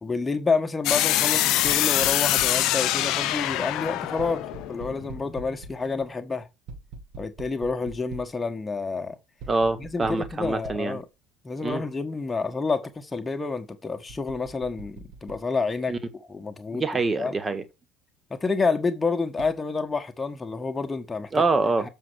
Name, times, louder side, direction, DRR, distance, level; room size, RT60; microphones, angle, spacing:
voice 1, 0.0-6.5 7.2-9.2 9.8-11.0 11.4-15.9 16.3-16.8 17.2-17.3 18.3-21.4, left 4 dB, 15° left, 1.4 m, -29 dB
sound 1, 0.8-5.7, left 14 dB, 50° left, 0.8 m, -24 dB
sound 2, 1.6-2.7 4.2-5.9 6.7-8.4 9.4-11.0 11.6-11.7 14.1-15.4 19.4-19.6, right 3 dB, 55° right, 2.1 m, -43 dB
voice 2, 9.5-11.0 11.6-11.8 15.9-16.0 16.7-17.6 21.3-21.9, right 3 dB, 20° right, 1.6 m, -25 dB
7.3 x 5.6 x 6.4 m
figure-of-eight pair, 65°, 0 cm